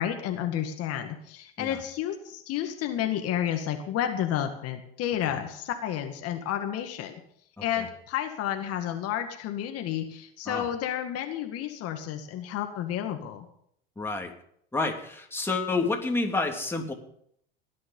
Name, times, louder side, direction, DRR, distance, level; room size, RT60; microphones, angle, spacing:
voice 1, 0.0-7.2 7.6-13.5, left 10 dB, 50° left, 5 dB, 1.9 m, -31 dB
voice 2, 14.0-14.3 14.7-16.9, left 3 dB, 10° left, 1 dB, 3.1 m, -29 dB
17.0 x 11.0 x 5.5 m, 0.69 s
hypercardioid pair, 85°, 30 cm